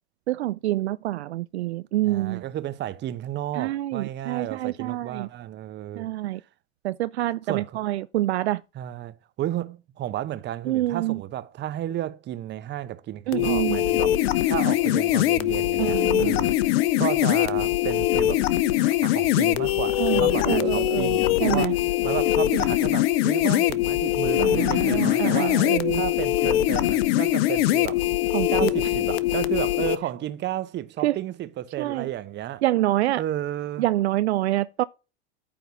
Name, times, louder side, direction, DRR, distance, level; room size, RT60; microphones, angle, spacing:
voice 1, 0.3-2.4 3.6-5.3 6.0-6.4 6.8-8.6 10.7-11.2 13.3-13.9 15.8-16.4 20.0-21.7 24.4-26.0 28.3-28.9 31.0-31.2 31.8-32.1 32.6-33.2 33.8-34.8, right 15 dB, 70° right, 0.5 m, -26 dB
voice 2, 2.0-6.1 7.5-7.8 8.7-16.7 17.0-18.5 18.8-25.6 25.9-28.1 28.5-32.6 33.2-33.9, right 12 dB, 30° right, 0.9 m, -32 dB
sound 1, 13.3-30.0, left 14 dB, 60° left, 0.8 m, -22 dB
9.3 x 3.8 x 6.8 m
hypercardioid pair, 90°, 33 cm